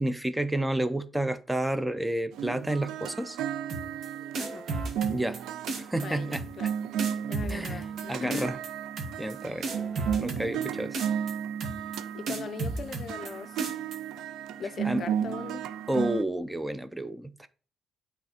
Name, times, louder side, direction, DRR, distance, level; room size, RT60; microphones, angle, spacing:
voice 1, 0.0-3.4 5.1-5.4 5.9-6.4 7.5-8.6 9.2-9.7 10.2-11.0 14.8-15.0 15.9-17.5, right 1 dB, 10° right, 0.6 m, -30 dB
sound 1, 2.3-16.2, right 9 dB, 85° right, 0.4 m, -34 dB
sound 2, 3.7-4.1 4.4-5.4 5.7-6.1 6.3-6.7 7.0-8.0 8.3-8.7 9.0-9.3 9.6-10.7 10.9-11.3 11.6-12.0 12.3-13.3 13.6-14.0, right 3 dB, 60° right, 1.4 m, -33 dB
voice 2, 6.0-6.7 7.3-8.5 9.8-9.9 12.1-13.6 14.6-15.6, left 6 dB, 50° left, 0.5 m, -39 dB
8.9 x 3.5 x 4.3 m
cardioid pair, 90°, 0 cm